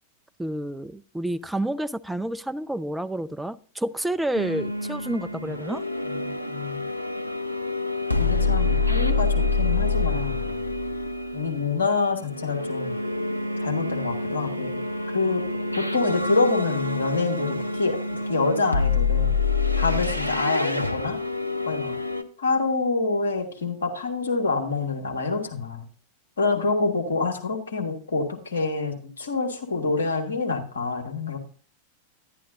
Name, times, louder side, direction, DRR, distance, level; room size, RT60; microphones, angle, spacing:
voice 1, 0.4-5.8, right 1 dB, 5° right, 0.3 m, -29 dB
sound 1, 4.3-22.2, left 3 dB, 90° left, 0.5 m, -27 dB
voice 2, 6.1-6.8 8.2-10.4 11.3-12.9 13.6-14.8 15.1-19.4 19.8-21.2 21.6-22.0 22.4-25.8 26.4-31.4, left 3 dB, 70° left, 1.5 m, -26 dB
10.5 x 10.0 x 2.6 m
figure-of-eight pair, 90°, 0 cm